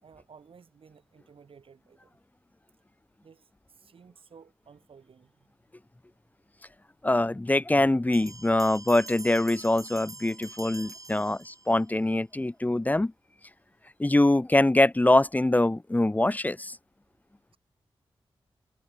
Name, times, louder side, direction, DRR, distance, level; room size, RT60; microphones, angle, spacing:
voice 1, 0.0-2.1 3.2-3.5 3.8-5.5 8.6-8.8 11.2-11.4, right 6 dB, 70° right, 3.8 m, -55 dB
voice 2, 7.0-13.1 14.0-16.7, left 1 dB, 15° left, 0.7 m, -23 dB
Bell, 8.1-11.9, right 3 dB, 35° right, 5.7 m, -45 dB
cardioid pair, 45°, 10 cm